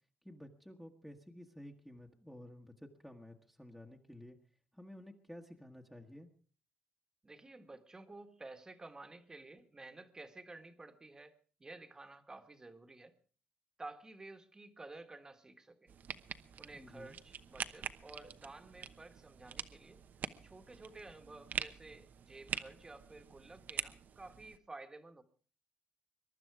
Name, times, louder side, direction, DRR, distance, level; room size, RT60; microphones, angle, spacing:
voice 1, 0.2-4.4 4.7-6.3 16.7-17.2, left 1 dB, ahead, 1 dB, 1.5 m, -53 dB
voice 2, 7.2-11.3 11.6-13.1 13.8-15.9 16.6-20.0 20.4-25.2, right 2 dB, 15° right, 8 dB, 1.5 m, -52 dB
sound 1, 15.9-24.6, right 8 dB, 55° right, 0.9 m, -45 dB
22.5 x 12.0 x 4.8 m, 0.41 s
cardioid pair, 135°, 4 cm